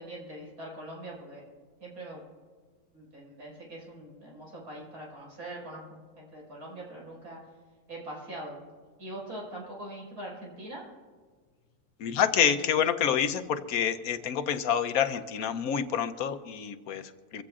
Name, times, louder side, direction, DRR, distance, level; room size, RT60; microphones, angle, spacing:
voice 1, 0.0-1.4 1.8-2.2 2.9-7.4 7.9-8.6 9.0-10.8, right 1 dB, 90° right, -4 dB, 5.8 m, -42 dB
voice 2, 12.0-17.4, left 8 dB, 70° left, 10 dB, 1.2 m, -28 dB
24.0 x 16.0 x 2.5 m, 1.5 s
omnidirectional pair, 1.6 m